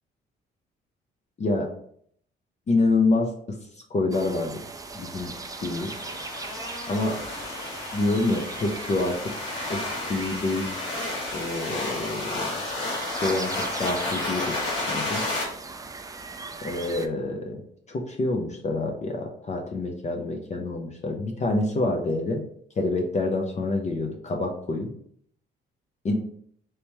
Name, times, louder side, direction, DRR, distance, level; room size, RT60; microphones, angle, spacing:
voice 1, 1.4-1.7 2.7-3.3 3.9-4.6 4.9-5.3 5.6-5.9 6.9-7.2 7.9-9.3 9.7-9.8 10.1-10.7 11.3-12.5 13.2-13.5 13.8-14.5 14.9-15.2 16.6-17.6 17.9-22.4 22.8-24.9 26.0-26.1, left 2 dB, 35° left, 2 dB, 0.5 m, -26 dB
sound 1, 4.1-17.1, right 3 dB, 20° right, 0.3 m, -39 dB
sound 2, 5.0-15.4, left 2 dB, 85° left, 1.4 m, -32 dB
3.4 x 2.9 x 2.9 m, 0.64 s
cardioid pair, 90°, 20 cm